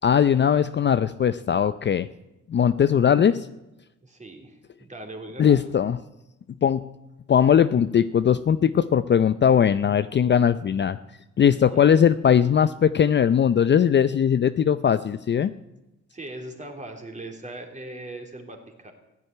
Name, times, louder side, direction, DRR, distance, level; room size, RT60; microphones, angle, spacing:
voice 1, 0.0-2.1 2.5-3.5 5.4-6.0 6.6-6.9 7.3-11.0 11.4-15.5, left 8 dB, 35° left, 13 dB, 0.5 m, -20 dB
voice 2, 4.0-5.7 11.6-11.9 16.1-18.9, right 1 dB, 25° right, 3 dB, 3.3 m, -40 dB
15.5 x 9.8 x 9.4 m, 0.95 s
cardioid pair, 90°, 30 cm